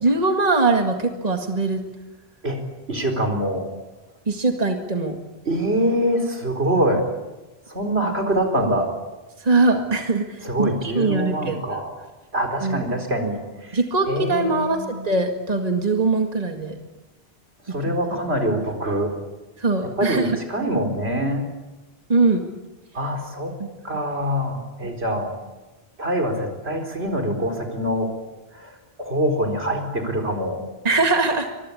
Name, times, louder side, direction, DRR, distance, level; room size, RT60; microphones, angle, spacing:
voice 1, 0.0-1.8 4.3-5.2 9.4-10.3 10.6-11.8 12.6-12.8 13.7-16.8 19.6-20.3 22.1-22.4 23.6-23.7 23.9-24.0 24.8-24.9 30.8-31.5, right 3 dB, 40° right, 4 dB, 2.1 m, -21 dB
voice 2, 2.4-3.7 5.4-7.1 7.7-8.9 10.4-12.0 12.3-13.8 14.1-14.9 17.7-19.1 20.0-21.5 22.9-23.5 23.8-25.3 26.0-28.1 28.5-28.7 29.0-30.6, equal, 80° right, 5 dB, 4.7 m, -24 dB
25.0 x 23.5 x 8.7 m, 1.1 s
omnidirectional pair, 1.1 m